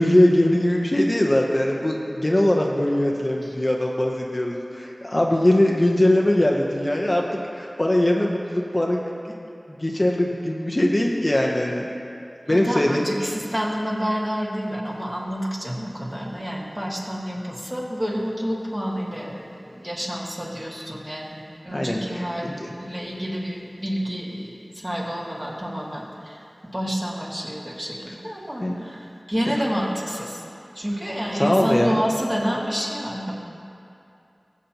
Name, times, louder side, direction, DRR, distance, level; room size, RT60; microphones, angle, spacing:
voice 1, 0.0-9.0 9.7-11.8 12.5-13.0 21.1-21.2 21.7-22.7 28.6-28.8 31.4-32.0, left 1 dB, 35° left, -1 dB, 0.9 m, -21 dB
voice 2, 12.5-26.4 26.7-30.4 30.7-33.3, equal, 20° right, -4 dB, 2.0 m, -29 dB
19.0 x 7.4 x 3.0 m, 2.6 s
wide cardioid pair, 50°, 0 cm